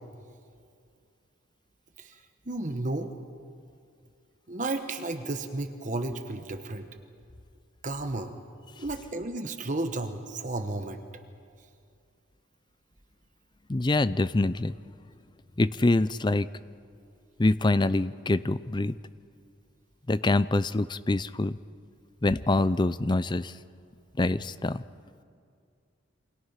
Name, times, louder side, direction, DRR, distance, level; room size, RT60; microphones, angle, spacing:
voice 1, 2.5-3.1 4.5-6.9 7.8-8.4 8.8-11.0, right 2 dB, 40° right, 7 dB, 1.1 m, -33 dB
voice 2, 13.7-14.8 15.6-16.5 17.4-18.9 20.1-21.6 22.2-23.5 24.2-24.8, left 2 dB, 20° left, 15 dB, 0.5 m, -25 dB
28.5 x 25.0 x 5.8 m, 2.3 s
head